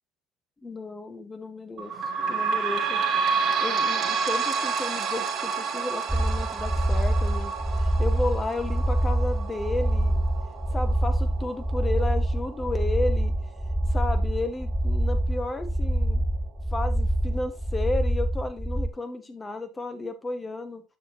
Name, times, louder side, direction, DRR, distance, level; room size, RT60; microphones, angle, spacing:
voice 1, 0.6-1.9 2.3-3.0 3.6-10.2 10.7-13.3 13.9-16.2 16.7-20.8, left 2 dB, 20° left, 8 dB, 1.6 m, -33 dB
sound 1, 1.8-14.9 15.5-15.6 15.9-16.0 16.8-16.9, right 5 dB, 50° right, 2.0 m, -30 dB
sound 2, 6.1-18.9, right 1 dB, 5° right, 0.5 m, -25 dB
8.4 x 6.5 x 3.0 m, 0.29 s
supercardioid pair, 80°, 0 cm